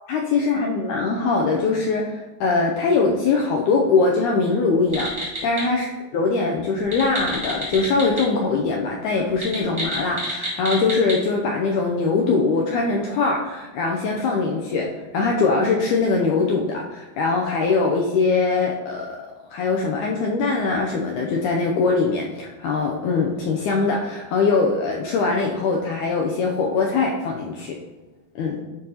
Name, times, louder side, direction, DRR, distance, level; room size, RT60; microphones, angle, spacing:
voice 1, 0.1-14.9 15.1-19.2 19.5-27.8 28.4-28.6, left 4 dB, 85° left, 0 dB, 1.7 m, -22 dB
sound 1, 4.9-5.6 6.8-8.2 8.5-8.6 9.3-11.2, equal, 25° right, 0.5 m, -29 dB
11.0 x 4.5 x 2.8 m, 1.2 s
omnidirectional pair, 4.1 m